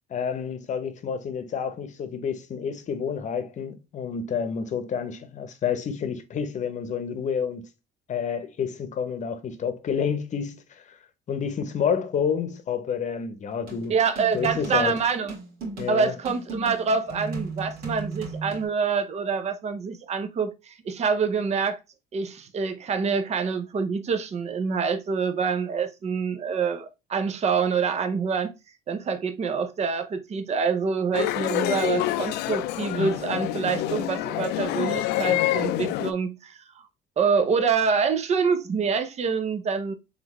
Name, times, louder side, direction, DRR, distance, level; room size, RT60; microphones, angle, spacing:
voice 1, 0.1-7.7 8.1-11.0 11.3-13.9 14.3-15.0 15.8-16.1 31.5-31.6, left 7 dB, 45° left, 0.8 m, -29 dB
sound 1, 13.7-18.7, right 3 dB, 60° right, 2.2 m, -36 dB
voice 2, 13.9-15.3 15.9-21.8 22.1-28.6 28.9-36.8 37.2-39.9, right 5 dB, 40° right, 0.7 m, -26 dB
sound 2, 31.1-36.1, left 14 dB, 90° left, 0.4 m, -27 dB
3.8 x 3.6 x 3.0 m
cardioid pair, 110°, 17 cm